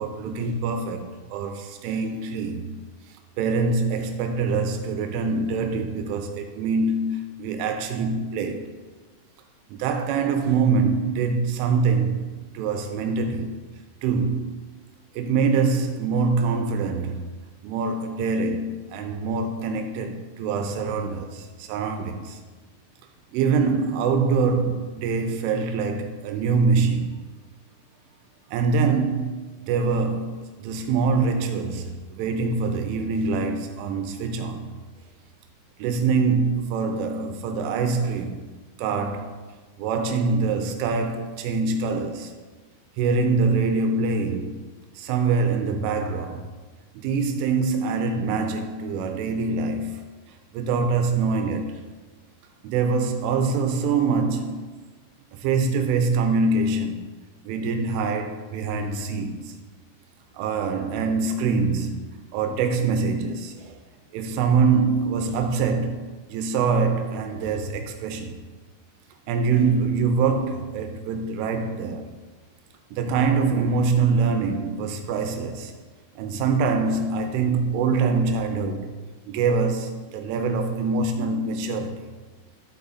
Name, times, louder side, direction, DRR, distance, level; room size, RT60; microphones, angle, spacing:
voice 1, 0.0-2.8 3.4-8.7 9.7-12.2 12.5-13.6 14.0-14.6 15.2-17.3 17.6-22.4 23.3-27.1 28.5-34.7 35.8-38.4 38.8-39.3 39.8-42.3 43.0-44.6 45.0-46.5 47.0-50.0 50.5-51.8 52.6-54.6 55.3-57.0 57.5-59.6 60.3-63.8 64.1-68.3 69.3-72.1 72.9-75.7 76.2-78.9 79.3-82.1, right 4 dB, 80° right, 3.0 m, -24 dB
12.5 x 5.0 x 4.1 m
omnidirectional pair, 5.8 m